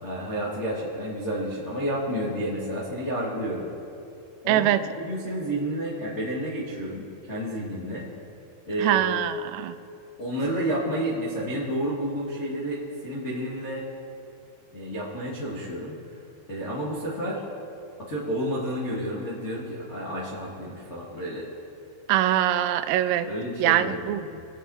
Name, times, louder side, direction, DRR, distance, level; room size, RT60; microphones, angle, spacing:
voice 1, 0.0-3.7 4.4-4.7 5.0-8.1 8.7-9.0 10.2-13.8 14.7-15.9 16.5-17.4 18.0-21.5 23.3-24.4, right 1 dB, 45° left, -8 dB, 0.9 m, -30 dB
voice 2, 4.5-4.9 8.8-9.8 22.1-23.3 23.6-24.2, right 12 dB, 85° right, 12 dB, 2.7 m, -23 dB
22.5 x 7.5 x 4.2 m, 2.6 s
omnidirectional pair, 5.0 m